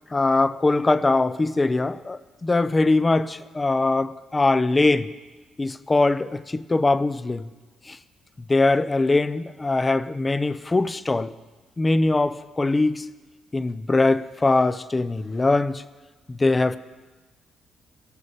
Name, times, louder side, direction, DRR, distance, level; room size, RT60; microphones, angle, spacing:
voice 1, 0.1-5.1 5.6-7.4 8.5-11.3 11.8-13.0 13.5-15.8 16.3-16.8, left 2 dB, 20° left, 0.5 m, -22 dB
19.0 x 6.8 x 5.2 m
cardioid pair, 90°, 0 cm